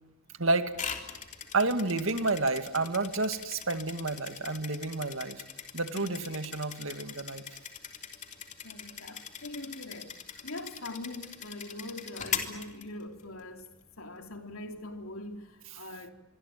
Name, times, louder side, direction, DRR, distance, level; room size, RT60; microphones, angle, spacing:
voice 1, 0.4-1.0 1.5-5.4 5.7-7.4, right 3 dB, 65° right, 2.2 m, -30 dB
sound 1, 0.7-13.4, left 7 dB, 35° left, 3.2 m, -41 dB
voice 2, 5.9-6.3 8.6-10.1 10.4-13.7 14.0-16.1, left 2 dB, 80° left, 3.2 m, -42 dB
26.0 x 23.5 x 9.2 m
head